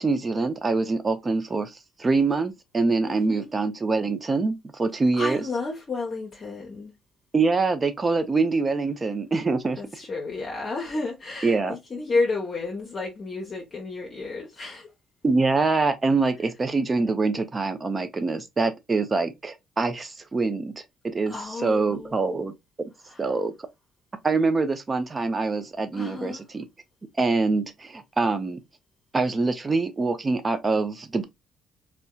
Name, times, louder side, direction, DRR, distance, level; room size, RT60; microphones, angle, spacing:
voice 1, 0.0-1.7 2.0-5.4 7.3-9.8 11.4-11.8 15.2-22.5 23.2-23.5 24.2-26.6 27.2-28.6 29.1-31.2, right 3 dB, 30° right, 0.5 m, -24 dB
voice 2, 3.1-3.5 5.2-6.9 9.8-11.6 11.9-14.9 21.3-22.4 23.1-23.3 25.9-26.5, left 3 dB, 45° left, 0.7 m, -31 dB
2.6 x 2.1 x 2.2 m
supercardioid pair, 70°, 0 cm